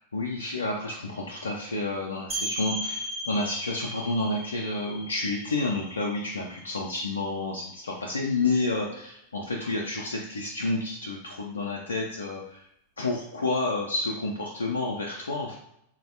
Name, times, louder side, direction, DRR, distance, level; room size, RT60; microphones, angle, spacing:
voice 1, 0.0-12.6 13.0-15.5, left 2 dB, 75° left, -2 dB, 0.3 m, -30 dB
sound 1, 2.3-7.8, equal, 20° right, 0.4 m, -37 dB
3.9 x 2.1 x 2.6 m, 0.78 s
figure-of-eight pair, 90°, 0 cm